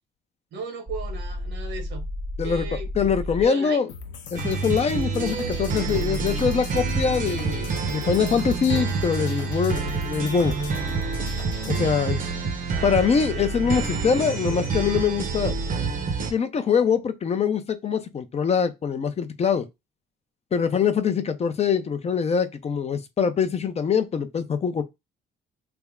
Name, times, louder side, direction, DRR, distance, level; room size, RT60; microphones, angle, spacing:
voice 1, 0.5-2.1 2.4-2.9 3.4-3.9, right 4 dB, 75° right, 1.2 m, -35 dB
sound 1, 0.9-3.5, left 1 dB, 15° right, 0.6 m, -32 dB
voice 2, 3.0-3.9 4.3-10.5 11.7-12.2 12.8-15.6 16.3-19.7 20.5-24.8, left 6 dB, 35° left, 0.5 m, -23 dB
sound 2, 3.9-11.9, left 5 dB, 80° left, 0.7 m, -40 dB
sound 3, 4.3-16.3, right 4 dB, 45° right, 0.8 m, -27 dB
3.4 x 2.1 x 3.5 m
cardioid pair, 120°, 19 cm